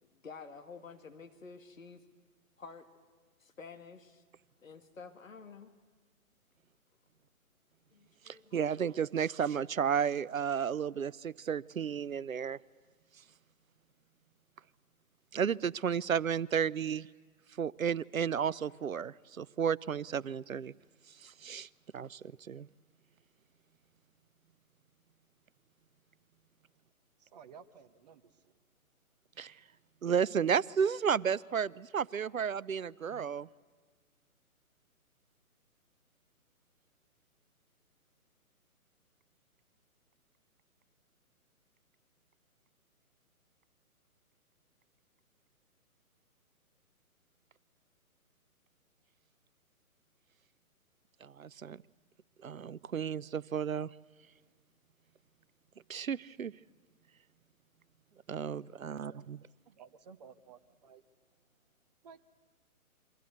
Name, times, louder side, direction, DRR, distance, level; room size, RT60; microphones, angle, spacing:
voice 1, 0.0-2.0 2.6-2.9 3.4-4.2 4.6-5.7 7.9-8.6, left 5 dB, 65° left, 7 dB, 2.3 m, -50 dB
voice 2, 8.3-12.6 15.3-17.1 17.6-20.7 21.2-21.7 21.9-22.7 29.4-29.5 30.0-33.5 51.2-51.8 52.4-53.9 55.9-56.5 58.3-59.4, right 7 dB, 65° right, 21 dB, 0.7 m, -33 dB
voice 3, 27.2-28.5 58.9-59.3 59.7-61.0 62.0-62.2, right 6 dB, 30° right, 9 dB, 1.0 m, -55 dB
28.5 x 24.0 x 8.2 m, 1.5 s
figure-of-eight pair, 135°, 44 cm